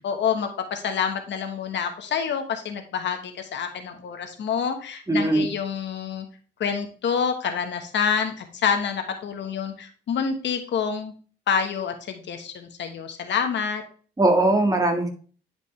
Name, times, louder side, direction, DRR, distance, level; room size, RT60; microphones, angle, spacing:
voice 1, 0.0-6.3 6.6-11.1 11.5-13.8, left 7 dB, 65° left, 5 dB, 1.2 m, -27 dB
voice 2, 5.1-5.5 14.2-15.1, right 2 dB, 20° right, 3 dB, 1.7 m, -20 dB
10.0 x 5.1 x 3.2 m, 0.42 s
cardioid pair, 90°, 20 cm